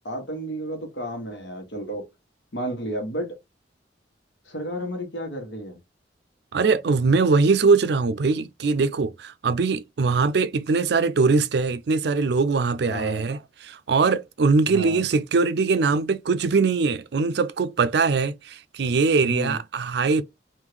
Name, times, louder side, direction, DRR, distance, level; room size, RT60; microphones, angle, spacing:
voice 1, 0.0-2.1 2.5-3.4 4.5-5.8 12.9-13.2 14.7-15.0 19.2-19.6, right 1 dB, 75° left, 1.4 m, -32 dB
voice 2, 6.5-20.2, right 4 dB, 65° right, 0.4 m, -22 dB
3.6 x 2.6 x 3.2 m
head